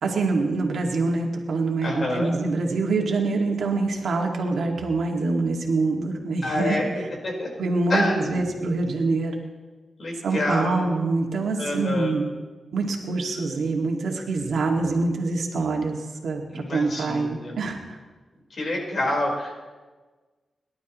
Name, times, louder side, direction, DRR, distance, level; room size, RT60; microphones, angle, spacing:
voice 1, 0.0-6.8 7.6-9.3 10.2-12.3 12.7-18.0, right 3 dB, 85° right, 1 dB, 2.0 m, -25 dB
voice 2, 1.8-2.3 6.4-6.9 7.2-7.5 7.9-8.4 10.0-10.8 11.6-12.2 16.5-17.6 18.5-19.6, left 1 dB, 50° left, -1 dB, 4.3 m, -27 dB
29.0 x 12.0 x 3.1 m, 1.3 s
wide cardioid pair, 110°, 0 cm